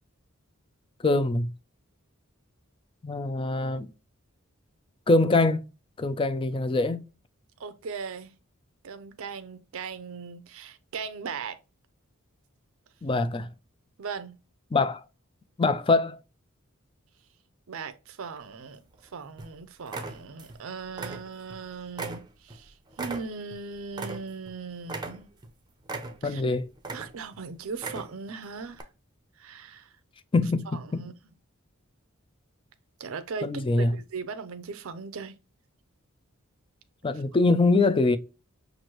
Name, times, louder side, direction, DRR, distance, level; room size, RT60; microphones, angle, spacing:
voice 1, 1.0-1.5 3.0-3.9 5.1-5.6 6.0-7.0 13.0-13.5 14.7-15.0 15.6-16.2 26.2-26.7 30.3-31.0 33.4-33.9 37.0-38.2, left 3 dB, 25° left, 0.4 m, -23 dB
voice 2, 7.6-8.3 8.8-11.6 14.0-14.4 17.7-18.8 19.1-25.3 26.2-26.4 26.9-28.9 29.4-29.9 30.7-31.1 33.0-33.5 33.8-35.3, right 5 dB, 65° right, 0.5 m, -38 dB
sound 1, 18.4-19.0 19.4-19.5 19.9-20.6 20.9-21.6 22.0-24.5 24.9-25.5 25.9-26.4 26.8-27.4 27.7-28.3 28.7-28.8, right 3 dB, 20° right, 0.6 m, -38 dB
6.0 x 2.6 x 2.9 m
head